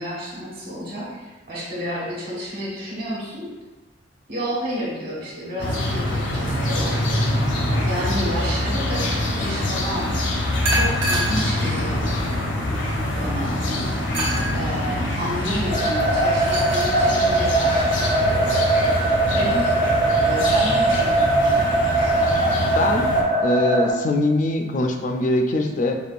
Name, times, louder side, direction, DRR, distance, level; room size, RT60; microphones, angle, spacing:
voice 1, 0.0-3.5 4.3-7.1 7.9-10.1 10.7-12.0 13.0-13.6 14.5-18.5 19.3-19.8 20.2-21.9, equal, 55° right, -6 dB, 1.3 m, -31 dB
sound 1, 5.6-23.2, left 1 dB, 70° left, 0.7 m, -24 dB
sound 2, 6.4-7.5 10.6-11.5 12.2-12.3 14.1-14.5 16.2-16.9, right 1 dB, 90° right, 1.2 m, -27 dB
sound 3, 15.7-23.9, right 2 dB, 25° right, 0.6 m, -21 dB
voice 2, 22.8-23.1 23.4-26.0, left 2 dB, 40° left, 4 dB, 0.3 m, -22 dB
4.9 x 2.4 x 2.5 m, 1.2 s
head